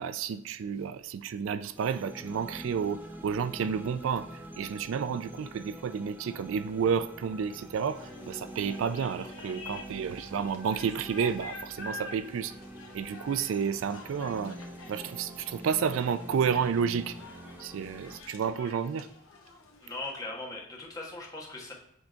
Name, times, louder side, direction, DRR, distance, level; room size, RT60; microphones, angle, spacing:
voice 1, 0.0-4.3 4.6-12.5 12.9-14.6 14.9-17.2 17.6-19.1, right 6 dB, 70° right, 13 dB, 0.3 m, -31 dB
sound 1, 1.7-18.2, right 1 dB, 10° right, 0.6 m, -46 dB
sound 2, 7.8-20.1, left 3 dB, 85° left, 1.1 m, -48 dB
voice 2, 19.8-21.7, left 2 dB, 20° left, -3 dB, 1.5 m, -39 dB
7.4 x 3.5 x 4.4 m, 0.80 s
head